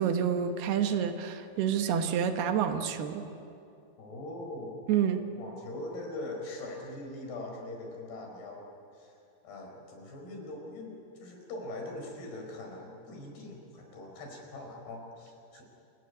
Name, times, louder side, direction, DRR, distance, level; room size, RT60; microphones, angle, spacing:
voice 1, 0.0-3.3 4.9-5.2, right 8 dB, 75° right, 6 dB, 3.1 m, -28 dB
voice 2, 4.0-4.8 5.3-8.6 8.9-9.1 9.4-15.6, left 2 dB, 70° left, 1 dB, 6.6 m, -42 dB
28.0 x 16.0 x 9.7 m, 2.6 s
omnidirectional pair, 4.7 m